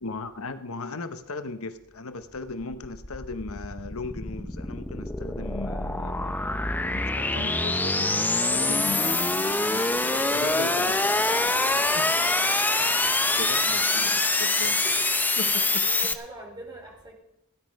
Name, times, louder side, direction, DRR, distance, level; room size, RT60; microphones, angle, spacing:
voice 1, 0.0-6.3 6.8-9.3 10.3-11.0 11.9-12.1 13.4-14.8 15.4-15.9, left 3 dB, 75° left, 10 dB, 1.0 m, -37 dB
sound 1, 2.4-16.1, left 2 dB, 10° left, 0.8 m, -25 dB
voice 2, 8.7-10.9 11.2-11.5 11.9-12.3 12.7-12.8 14.8-15.1 15.6-17.1, right 1 dB, 20° right, -1 dB, 4.6 m, -44 dB
16.5 x 10.5 x 5.2 m, 0.85 s
head